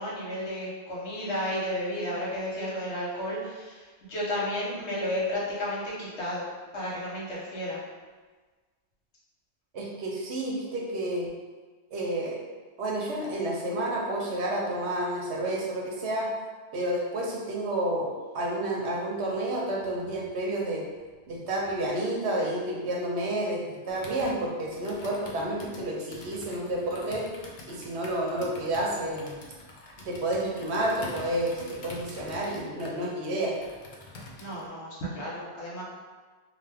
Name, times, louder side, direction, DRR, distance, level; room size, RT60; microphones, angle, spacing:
voice 1, 0.0-6.5 6.7-7.8 34.4-35.8, left 1 dB, 85° left, -5 dB, 1.2 m, -32 dB
voice 2, 9.7-11.3 11.9-12.4 12.8-16.3 16.7-18.1 18.3-20.9 21.3-27.2 27.7-29.3 30.0-33.5, right 1 dB, 80° right, -2 dB, 1.0 m, -30 dB
Computer keyboard, 23.9-34.7, left 2 dB, 55° left, 0.6 m, -46 dB
2.5 x 2.4 x 3.3 m, 1.4 s
omnidirectional pair, 1.1 m